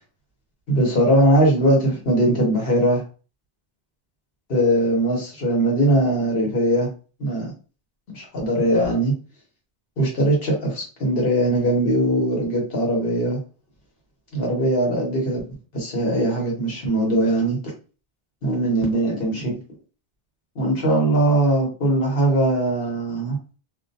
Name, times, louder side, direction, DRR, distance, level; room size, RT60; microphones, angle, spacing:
voice 1, 0.7-3.0 4.5-6.9 7.2-7.5 8.1-9.1 10.0-13.4 14.3-15.4 15.7-17.6 18.4-19.6 20.5-23.4, right 1 dB, 60° left, -1 dB, 1.2 m, -20 dB
2.5 x 2.0 x 2.6 m, 0.35 s
omnidirectional pair, 1.1 m